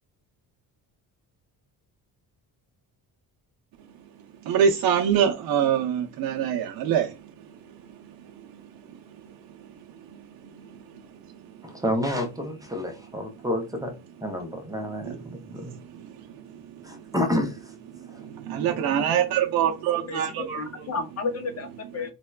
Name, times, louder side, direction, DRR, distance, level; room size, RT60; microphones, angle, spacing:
voice 1, 4.4-7.3 8.0-8.6 8.9-9.0 10.1-11.0 15.0-16.6 16.9-17.0 17.9-20.9, right 8 dB, 65° right, 0.6 m, -26 dB
voice 2, 11.6-13.9 14.2-15.7 16.8-17.7 18.1-18.3, left 1 dB, 10° right, 0.5 m, -29 dB
voice 3, 20.1-22.1, left 4 dB, 40° left, 0.6 m, -32 dB
4.1 x 2.2 x 2.3 m
cardioid pair, 140°, 39 cm